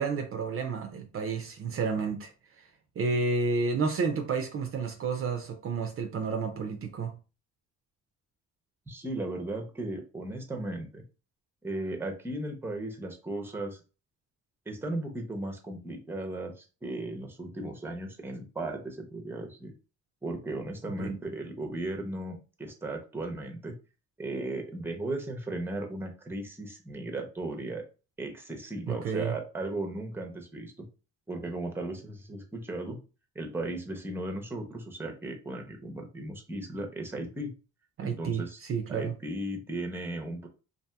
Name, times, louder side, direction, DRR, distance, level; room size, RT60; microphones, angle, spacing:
voice 1, 0.0-2.3 3.0-7.2 21.0-21.2 28.9-29.4 38.0-39.1, right 4 dB, 45° right, 0.4 m, -30 dB
voice 2, 8.9-11.0 11.6-13.8 14.7-19.7 20.2-23.7 24.2-27.8 28.2-30.9 31.3-33.0 33.3-37.5 38.0-38.6 38.9-40.5, right 2 dB, 10° right, 0.6 m, -36 dB
2.7 x 2.5 x 2.2 m
cardioid pair, 90°, 30 cm